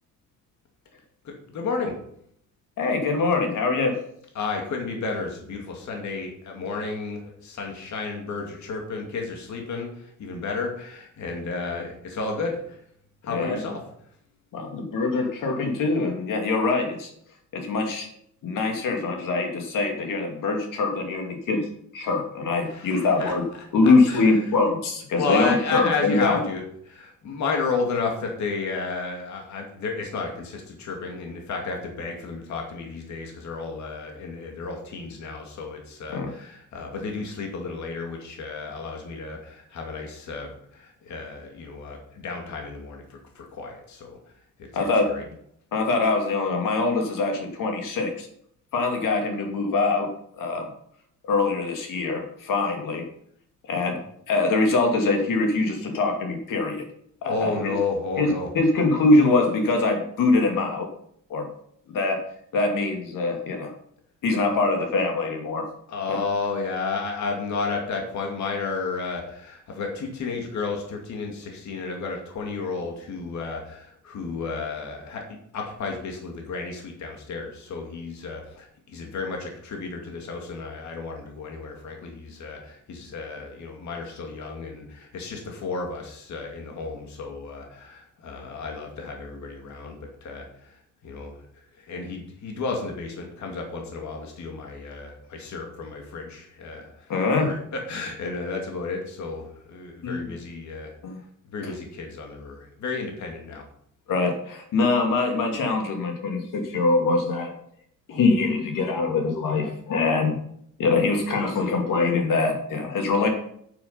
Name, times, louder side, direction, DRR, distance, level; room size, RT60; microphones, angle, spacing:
voice 1, 1.2-2.0 4.3-12.8 13.2-13.8 22.6-24.5 25.1-44.2 44.6-45.2 57.2-58.5 65.9-100.9 101.5-103.6, left 4 dB, 60° left, 2 dB, 2.4 m, -32 dB
voice 2, 2.8-4.0 13.2-13.6 14.5-17.1 17.5-18.1 18.4-21.6 21.9-23.4 23.7-26.4 36.1-36.3 44.7-45.1 45.7-48.3 48.7-50.1 50.4-50.7 51.3-53.1 53.7-54.0 54.3-56.8 57.2-57.8 58.2-58.3 58.5-60.9 61.3-61.5 61.9-62.3 62.5-63.7 64.2-65.7 66.1-66.2 97.1-97.5 100.0-100.3 101.0-101.1 101.6-101.7 104.1-107.6 108.1-110.4 110.8-113.3, left 3 dB, 80° left, 3 dB, 2.7 m, -23 dB
9.3 x 9.3 x 5.7 m, 0.67 s
cardioid pair, 175°, 32 cm